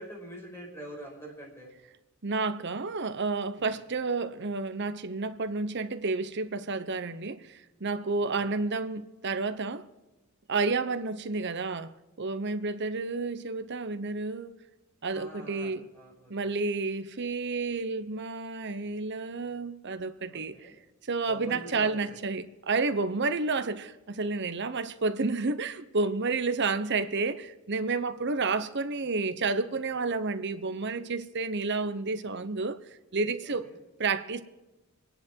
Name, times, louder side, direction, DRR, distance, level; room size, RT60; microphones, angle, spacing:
voice 1, 0.0-1.7 3.6-3.7 8.4-8.6 15.1-16.6 20.3-20.7 21.3-22.2 33.4-33.8, right 1 dB, 10° left, 5.4 m, -45 dB
voice 2, 2.2-9.9 10.5-11.9 12.2-14.5 15.0-15.8 16.3-20.7 21.0-32.8 33.1-33.7 34.0-34.4, right 3 dB, 55° right, 1.0 m, -30 dB
25.5 x 10.5 x 4.6 m
head